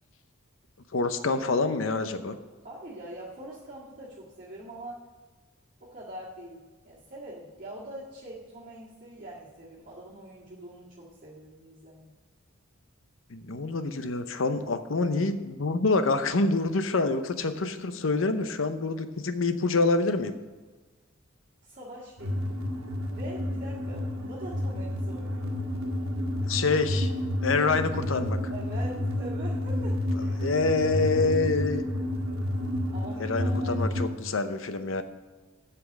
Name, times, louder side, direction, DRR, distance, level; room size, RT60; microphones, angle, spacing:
voice 1, 0.9-2.4 13.3-20.4 26.5-27.1 27.4-28.4 30.4-31.9 33.2-35.0, left 3 dB, 70° left, 10 dB, 0.7 m, -26 dB
voice 2, 2.6-5.0 5.8-12.1 21.6-22.6 23.1-25.5 28.5-30.4 30.6-30.7 31.0-31.5 32.9-34.3, right 1 dB, 40° right, -8 dB, 1.8 m, -43 dB
sound 1, 22.2-34.1, left 1 dB, 90° right, 1.5 m, -30 dB
8.0 x 6.0 x 7.2 m, 1.3 s
head